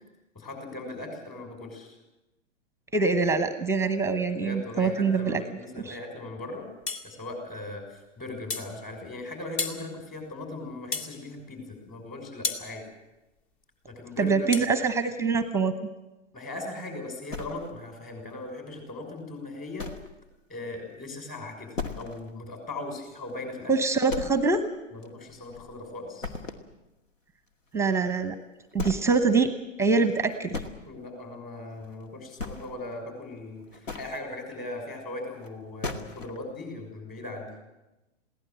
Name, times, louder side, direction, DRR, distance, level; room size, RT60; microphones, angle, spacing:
voice 1, 0.3-2.0 4.4-6.7 7.0-12.8 13.8-14.5 16.3-19.9 20.5-23.7 24.9-26.3 30.9-37.5, left 2 dB, 20° left, 4 dB, 6.0 m, -39 dB
voice 2, 2.9-5.4 5.8-6.0 14.2-15.7 23.7-24.6 27.7-28.4 28.7-30.6, right 4 dB, 5° right, 10 dB, 0.9 m, -24 dB
sound 1, 6.9-7.1 8.5-8.7 9.6-9.8 10.9-11.1 12.4-12.7 14.5-14.7, left 4 dB, 40° left, 2.3 m, -31 dB
sound 2, 17.3-18.0 18.5-18.6 19.1-19.2 19.8-20.2 20.5-20.6 21.0-21.1 21.7-22.3 22.7-22.8 23.2-23.3 24.1-24.7 25.0-25.8 26.2-26.7 28.1-28.2 28.7-29.2 30.1-30.7 31.8-32.0 32.3-32.9 33.6-34.2 35.4-35.5 35.8-36.4, left 4 dB, 75° left, 2.3 m, -36 dB
22.0 x 17.0 x 7.7 m, 1.0 s
figure-of-eight pair, 115°, 39 cm